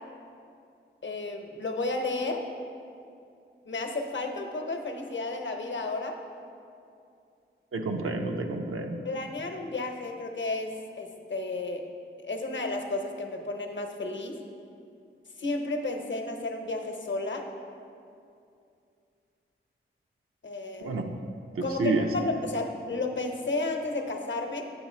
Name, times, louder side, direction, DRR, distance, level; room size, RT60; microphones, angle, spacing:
voice 1, 1.0-2.4 3.7-6.2 9.0-10.7 11.0-11.8 12.2-14.4 15.4-17.4 20.4-21.0 21.6-24.6, left 2 dB, 65° left, 4 dB, 0.7 m, -32 dB
voice 2, 7.7-9.0 20.8-21.0 21.5-22.1, right 3 dB, 90° right, 4 dB, 0.6 m, -29 dB
7.8 x 4.8 x 4.3 m, 2.5 s
wide cardioid pair, 65°, 21 cm